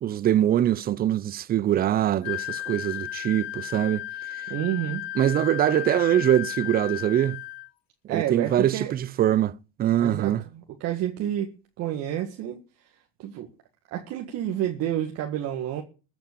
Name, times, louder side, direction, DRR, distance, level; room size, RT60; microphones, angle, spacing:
voice 1, 0.0-4.1 4.3-4.4 5.2-7.4 8.1-10.4, right 11 dB, 30° right, 0.6 m, -23 dB
Wind instrument woodwind instrument, 2.2-7.7, left 14 dB, 80° left, 0.6 m, -34 dB
voice 2, 4.5-5.0 8.1-8.9 10.0-11.5 11.8-12.6 13.2-13.5 13.9-15.8, right 11 dB, 55° right, 1.8 m, -29 dB
14.5 x 6.1 x 8.5 m
supercardioid pair, 105°, 30 cm